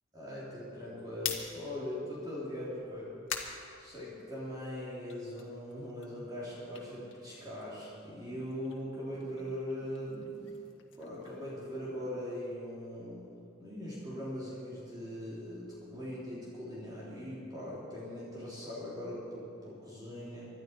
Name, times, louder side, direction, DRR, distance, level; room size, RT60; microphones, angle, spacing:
voice 1, 0.1-3.1 3.8-10.4 11.0-13.3 13.6-20.5, equal, 20° right, -8 dB, 3.5 m, -41 dB
sound 1, 1.0-4.6 5.0-7.9 8.2-12.3, left 8 dB, 70° left, 1.6 m, -45 dB
25.0 x 12.0 x 4.6 m, 2.6 s
head